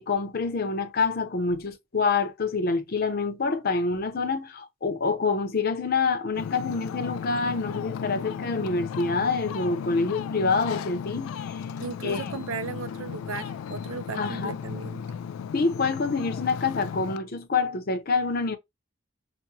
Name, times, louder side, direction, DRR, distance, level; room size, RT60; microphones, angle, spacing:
voice 1, 0.0-11.6 12.0-12.2 14.2-14.6 15.5-18.6, left 4 dB, 45° left, 0.6 m, -26 dB
Ocean, 6.3-17.2, left 7 dB, 90° left, 0.3 m, -35 dB
voice 2, 11.8-15.0, right 4 dB, 85° right, 0.5 m, -36 dB
5.9 x 2.1 x 2.7 m
head